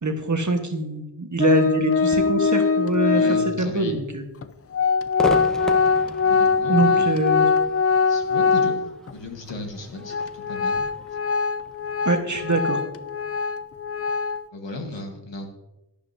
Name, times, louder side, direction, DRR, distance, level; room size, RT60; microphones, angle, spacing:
voice 1, 0.0-3.2 3.6-4.2 6.7-7.5 12.0-12.8, right 2 dB, 45° right, 5 dB, 1.3 m, -24 dB
Organ, 1.4-3.7 4.4-4.5 4.7-9.1 9.5-9.6 10.1-14.4, left 5 dB, 35° left, 0.4 m, -22 dB
voice 2, 3.1-4.0 6.2-7.2 8.1-8.8 9.1-10.9 14.5-15.5, left 2 dB, 85° left, 3 dB, 1.4 m, -35 dB
Crowd / Fireworks, 5.2-12.5, right 1 dB, ahead, 1.0 m, -35 dB
11.0 x 10.5 x 2.7 m, 1.0 s
cardioid pair, 40°, 43 cm